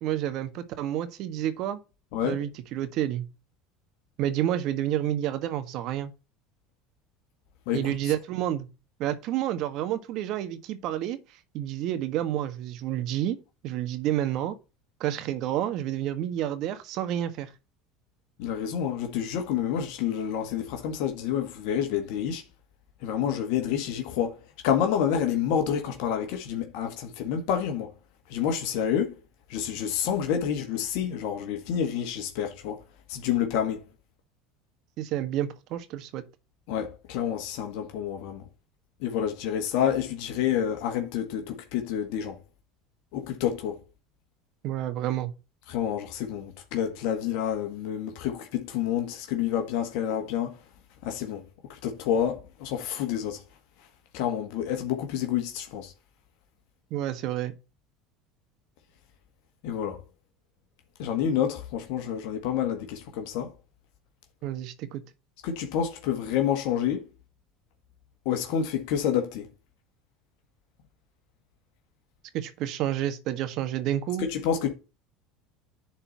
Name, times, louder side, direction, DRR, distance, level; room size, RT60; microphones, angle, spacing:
voice 1, 0.0-1.8 2.2-3.2 4.2-6.1 7.7-8.7 9.0-11.2 11.5-13.4 13.6-14.5 15.0-17.5 35.0-36.2 44.6-45.3 56.9-57.5 64.4-65.0 72.3-74.3, right 12 dB, 60° right, 1.5 m, -29 dB
voice 2, 7.7-8.1 18.4-22.4 23.0-27.9 28.3-29.1 29.5-32.8 33.1-33.8 36.7-38.4 39.0-42.4 43.1-43.8 45.7-50.6 51.0-51.4 51.7-53.4 54.1-55.9 59.6-60.0 61.0-63.5 65.4-67.1 68.2-69.5 74.2-74.7, left 9 dB, 70° left, 1.6 m, -28 dB
10.5 x 4.3 x 4.1 m
supercardioid pair, 95°, 0 cm